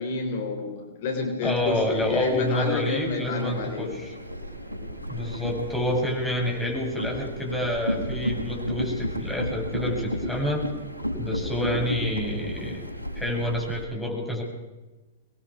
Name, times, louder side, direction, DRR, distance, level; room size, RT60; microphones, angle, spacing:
voice 1, 0.0-3.9 11.7-11.8, left 4 dB, 50° left, 5 dB, 3.9 m, -30 dB
voice 2, 1.4-4.1 5.1-10.7 11.2-12.9 13.2-14.4, left 1 dB, 5° left, -1 dB, 7.1 m, -28 dB
sound 1, 1.4-13.8, equal, 85° right, 4.7 m, -33 dB
26.0 x 21.5 x 4.9 m, 1.1 s
figure-of-eight pair, 100°, 0 cm